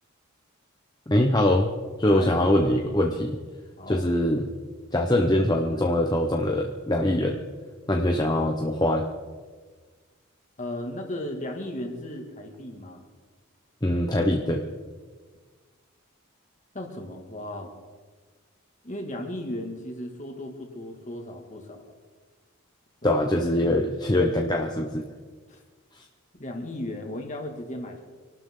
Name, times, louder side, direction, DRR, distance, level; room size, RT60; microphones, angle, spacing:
voice 1, 1.1-1.7 2.0-3.4 3.9-4.5 4.9-7.4 7.9-9.1 13.8-14.6 23.0-25.0, left 1 dB, 20° left, 1 dB, 1.0 m, -23 dB
voice 2, 2.0-2.4 3.8-4.0 10.6-13.0 16.7-17.7 18.8-21.9 23.0-23.2 25.5-25.6 26.3-28.0, left 1 dB, 35° left, 2 dB, 2.3 m, -35 dB
25.5 x 12.0 x 3.9 m, 1.5 s
head